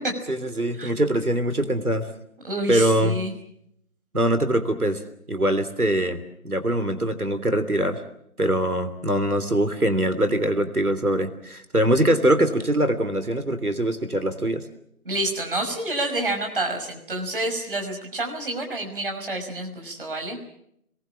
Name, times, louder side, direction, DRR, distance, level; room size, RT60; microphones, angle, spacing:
voice 1, 0.3-2.1 2.7-3.2 4.1-5.0 5.3-8.0 8.4-14.6, right 1 dB, 85° right, 9 dB, 3.3 m, -23 dB
voice 2, 2.4-3.3 15.0-20.4, right 1 dB, 40° right, 2 dB, 5.7 m, -28 dB
28.0 x 22.0 x 7.5 m, 0.75 s
figure-of-eight pair, 160°, 43 cm